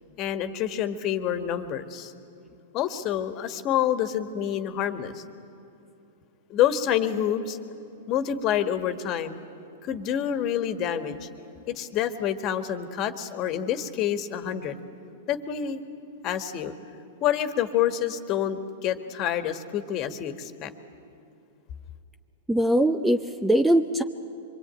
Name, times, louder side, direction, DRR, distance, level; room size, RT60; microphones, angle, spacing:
voice 1, 0.2-2.1 2.7-5.2 6.5-7.6 8.1-9.4 9.8-11.3 11.7-14.8 15.3-15.8 16.2-16.7 17.2-20.7, left 10 dB, 40° left, 9 dB, 1.7 m, -27 dB
voice 2, 22.5-24.0, right 1 dB, 5° right, 9 dB, 0.7 m, -22 dB
24.5 x 23.5 x 9.1 m, 2.6 s
hypercardioid pair, 120°, 0 cm